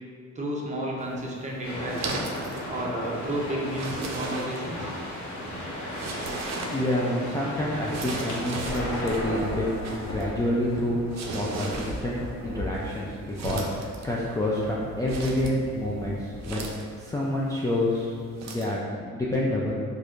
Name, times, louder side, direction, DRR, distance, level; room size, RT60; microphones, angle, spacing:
voice 1, 0.3-2.3 2.7-4.9, right 1 dB, 25° right, -3 dB, 0.7 m, -32 dB
sound 1, 1.0-18.8, right 3 dB, 65° right, 0.5 m, -39 dB
sound 2, 1.6-9.0, equal, 70° left, 1.0 m, -35 dB
voice 2, 6.5-16.7 17.0-18.2 18.5-18.8 19.0-19.8, left 1 dB, 10° left, -6 dB, 0.3 m, -28 dB
sound 3, 8.6-16.7, left 1 dB, 45° left, 1.2 m, -37 dB
4.2 x 2.5 x 2.4 m, 2.1 s
cardioid pair, 90°, 30 cm